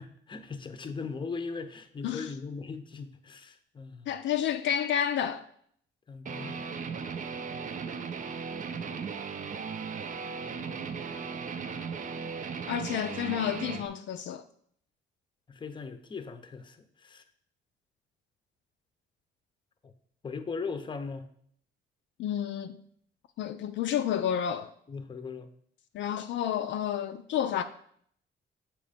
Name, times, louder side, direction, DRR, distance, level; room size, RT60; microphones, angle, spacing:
voice 1, 0.0-4.1 6.1-6.6 15.5-17.2 19.8-19.9 20.2-21.3 24.9-25.5, left 4 dB, 25° left, 0.6 m, -39 dB
voice 2, 4.1-5.4 12.7-14.4 22.2-22.8 23.4-24.7 25.9-27.6, left 9 dB, 70° left, 0.4 m, -30 dB
Guitar, 6.3-13.9, right 5 dB, 40° right, 0.5 m, -37 dB
7.1 x 3.1 x 5.1 m
cardioid pair, 90°, 20 cm